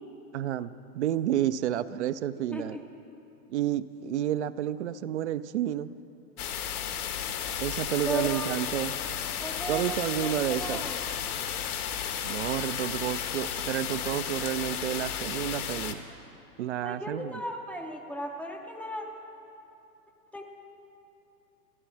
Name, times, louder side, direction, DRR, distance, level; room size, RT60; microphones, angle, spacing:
voice 1, 0.3-2.8 3.5-5.9 7.6-8.9 9.7-10.9 12.2-16.0 16.6-17.4, right 12 dB, 45° right, 15 dB, 0.5 m, -30 dB
sound 1, 6.4-15.9, left 8 dB, 60° left, 1.3 m, -33 dB
voice 2, 8.1-8.6 9.4-10.0 10.2-11.4 16.8-19.1 20.3-20.4, equal, 5° left, 2 dB, 0.5 m, -36 dB
15.5 x 10.5 x 7.2 m, 2.9 s
hypercardioid pair, 115°, 49 cm